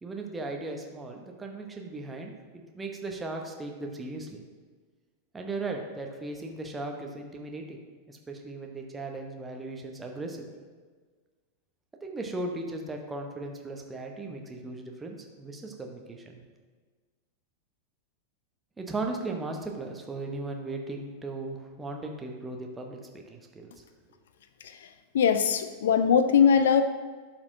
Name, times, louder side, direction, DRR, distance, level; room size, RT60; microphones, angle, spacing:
voice 1, 0.0-4.4 5.3-7.8 8.1-10.5 12.0-16.4 18.8-23.7, right 2 dB, 15° right, 2 dB, 0.9 m, -37 dB
voice 2, 25.1-26.8, left 7 dB, 60° left, 10 dB, 0.3 m, -21 dB
11.5 x 4.4 x 2.7 m, 1.5 s
figure-of-eight pair, 90°, 0 cm